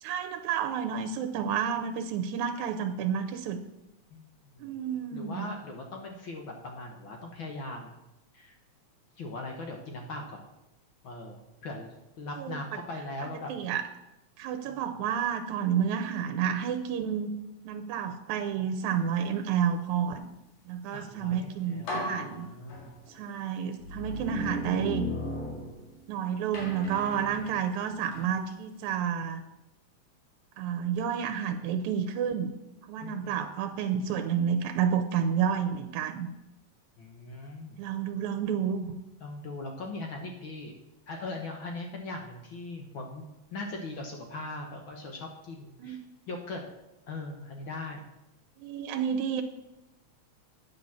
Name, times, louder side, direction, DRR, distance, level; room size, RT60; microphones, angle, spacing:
voice 1, 0.0-3.6 4.6-5.5 12.4-12.6 13.5-13.8 14.4-17.3 17.7-20.3 20.7-22.5 23.1-25.1 26.1-29.4 30.6-32.5 32.9-36.3 37.8-38.9 45.8-46.0 48.6-49.4, right 8 dB, 85° right, 5 dB, 2.0 m, -30 dB
voice 2, 5.1-7.9 8.3-8.6 9.2-10.4 11.0-13.5 20.9-22.9 33.0-33.5 37.0-37.8 39.2-40.7 41.1-46.0 46.3-46.6 47.1-48.0, left 2 dB, 60° left, 2 dB, 1.5 m, -40 dB
sound 1, 21.3-21.4 21.9-23.2 23.8-26.1 26.5-28.4, left 1 dB, 85° left, 3.5 m, -37 dB
9.5 x 5.4 x 7.2 m, 0.94 s
omnidirectional pair, 3.3 m